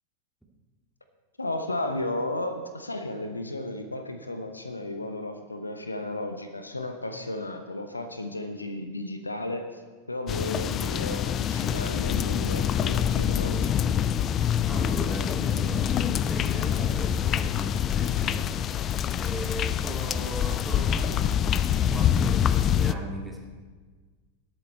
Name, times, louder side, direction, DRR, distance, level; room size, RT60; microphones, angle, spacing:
voice 1, 1.4-9.8 10.1-13.7, left 2 dB, 80° left, 7 dB, 1.0 m, -34 dB
sound 1, 10.3-22.9, left 9 dB, 30° left, 0.4 m, -26 dB
voice 2, 14.6-18.8 19.1-21.4 21.9-23.5, right 1 dB, 5° right, -2 dB, 2.3 m, -38 dB
19.0 x 8.1 x 4.3 m, 1.4 s
figure-of-eight pair, 90°, 0 cm